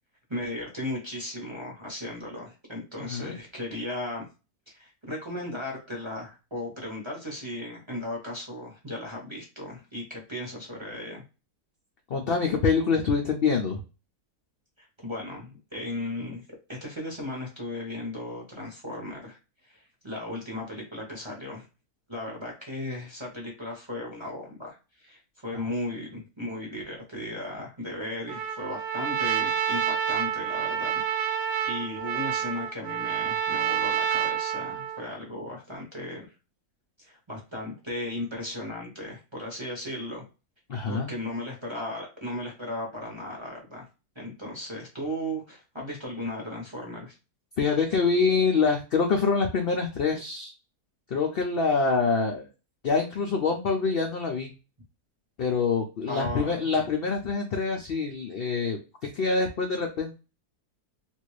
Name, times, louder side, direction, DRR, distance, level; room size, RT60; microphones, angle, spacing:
voice 1, 0.3-4.3 4.7-11.2 14.8-16.4 16.7-21.6 22.1-36.3 37.0-40.3 40.9-43.9 44.1-47.2 56.1-56.7, left 1 dB, 25° right, -2 dB, 0.7 m, -36 dB
voice 2, 3.0-3.3 12.1-13.8 40.7-41.1 47.6-50.5 51.1-52.5 52.8-54.5 55.4-58.8 59.1-60.1, left 4 dB, 70° left, 2 dB, 0.5 m, -25 dB
Trumpet, 28.3-35.1, right 8 dB, 70° right, 0.7 m, -28 dB
3.1 x 2.6 x 3.1 m, 0.31 s
omnidirectional pair, 1.6 m